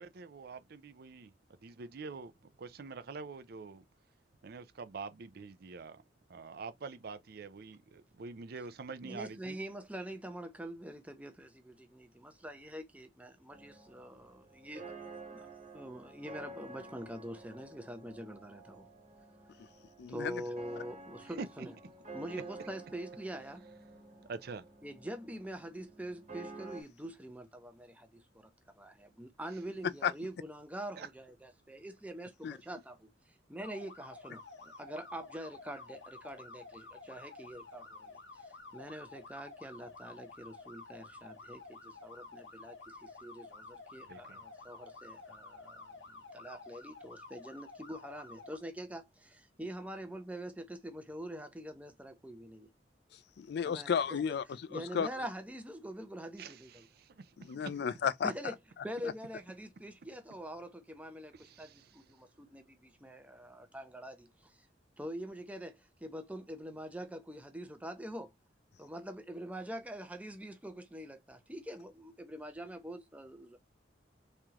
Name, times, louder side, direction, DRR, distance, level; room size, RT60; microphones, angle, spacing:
voice 1, 0.0-1.3 1.6-3.8 4.4-6.0 6.3-9.6 21.4-21.7 24.2-24.7 31.0-31.1 44.1-44.4 56.4-57.7 61.3-62.0, right 4 dB, 55° right, 0.5 m, -46 dB
voice 2, 9.0-14.9 15.3-15.5 15.7-18.9 20.1-21.7 22.1-23.6 24.8-33.1 33.5-52.7 53.6-54.2 54.7-56.9 58.2-58.5 58.8-64.6 65.0-68.3 68.8-73.6, right 1 dB, 10° right, 0.6 m, -45 dB
s piano lazy chords, 13.5-26.8, right 2 dB, 40° right, 1.3 m, -51 dB
voice 3, 20.0-20.4 29.8-30.1 32.4-32.6 53.1-55.1 57.4-58.3 59.0-59.1, left 7 dB, 60° left, 0.3 m, -33 dB
sound 1, 33.6-48.6, left 3 dB, 80° left, 1.1 m, -51 dB
3.6 x 3.2 x 2.9 m
head